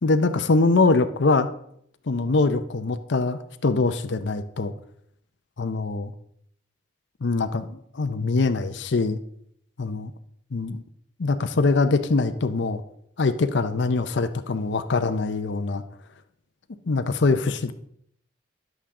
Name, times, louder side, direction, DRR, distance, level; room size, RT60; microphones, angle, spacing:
voice 1, 0.0-1.5 2.1-4.7 5.6-6.1 7.2-9.2 9.8-10.1 10.5-10.8 11.2-12.8 13.2-15.8 16.9-17.7, left 3 dB, 65° left, 9 dB, 0.6 m, -23 dB
10.0 x 8.0 x 3.7 m, 0.69 s
head